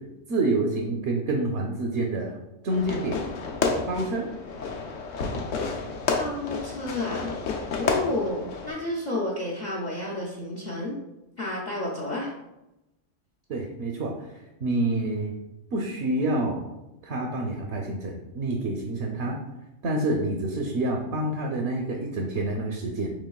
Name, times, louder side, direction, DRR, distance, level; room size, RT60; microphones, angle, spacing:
voice 1, 0.3-2.3 2.6-3.2 3.9-4.3 13.5-14.1 14.6-15.3 15.7-16.6 17.0-19.4 19.8-23.1, right 2 dB, 70° right, 0 dB, 0.8 m, -27 dB
Fireworks, 2.7-8.7, left 4 dB, 85° left, 1.0 m, -30 dB
voice 2, 6.2-7.3 7.8-11.0 11.4-12.3, left 2 dB, 50° left, -4 dB, 0.6 m, -31 dB
5.1 x 3.1 x 2.3 m, 0.95 s
omnidirectional pair, 1.3 m